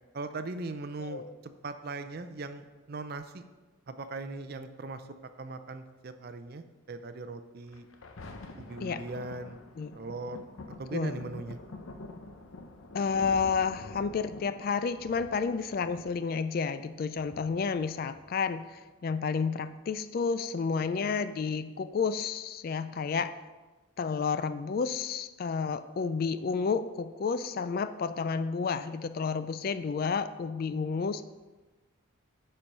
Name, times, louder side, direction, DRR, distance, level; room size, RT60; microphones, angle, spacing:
voice 1, 0.1-3.4 3.9-5.0 5.4-7.9 8.5-9.6 9.9-10.4 10.8-11.6, right 3 dB, 45° right, 10 dB, 0.5 m, -39 dB
voice 2, 1.0-1.3 8.8-9.0 9.8-10.0 10.9-11.2 12.9-23.3 24.0-31.2, left 5 dB, 45° left, 12 dB, 0.3 m, -31 dB
Thunder, 7.7-18.7 19.3-19.4, left 2 dB, 75° left, 0.8 m, -47 dB
9.8 x 4.5 x 5.4 m, 1.2 s
head